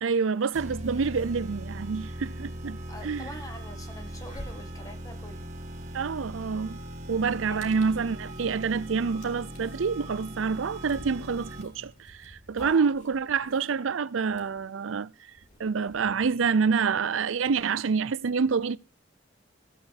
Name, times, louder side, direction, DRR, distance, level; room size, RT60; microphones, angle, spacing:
voice 1, 0.0-2.8 3.0-3.3 5.9-6.8 7.1-15.1 15.6-18.8, right 5 dB, 85° right, 0.5 m, -27 dB
sound 1, 0.5-11.9, equal, 35° right, 1.7 m, -40 dB
voice 2, 2.9-5.9 7.5-7.6 12.6-12.9, left 1 dB, 15° left, 1.8 m, -45 dB
sound 2, 3.1-16.4, equal, 35° left, 3.4 m, -51 dB
15.5 x 8.4 x 4.7 m
head